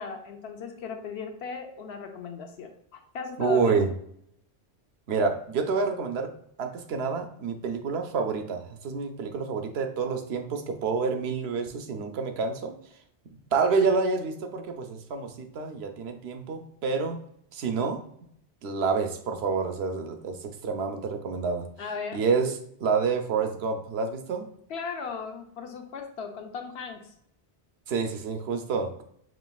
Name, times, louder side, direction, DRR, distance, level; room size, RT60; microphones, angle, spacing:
voice 1, 0.0-3.8 21.8-22.2 24.7-27.1, left 5 dB, 75° left, 4 dB, 0.9 m, -37 dB
voice 2, 3.4-3.9 5.1-6.3 6.6-12.7 13.5-17.2 17.5-18.0 18.6-21.7 22.1-24.5 27.9-28.9, right 5 dB, 70° right, 6 dB, 0.8 m, -28 dB
5.1 x 3.1 x 2.3 m, 0.70 s
omnidirectional pair, 1.1 m